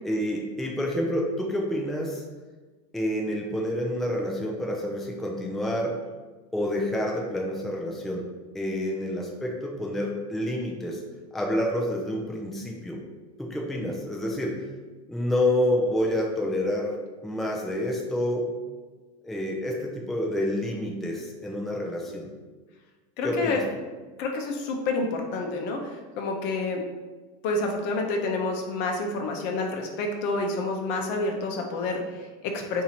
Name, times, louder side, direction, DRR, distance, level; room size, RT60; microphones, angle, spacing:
voice 1, 0.0-2.2 2.9-6.0 6.5-8.3 8.5-11.0 11.3-13.0 13.4-14.6 15.1-16.9 17.2-18.5 19.2-22.3 23.2-23.6, left 1 dB, ahead, -1 dB, 0.4 m, -28 dB
voice 2, 23.2-23.6 24.2-26.8 27.4-32.8, left 3 dB, 55° left, 2 dB, 0.7 m, -29 dB
2.7 x 2.7 x 4.2 m, 1.3 s
supercardioid pair, 125°, 21 cm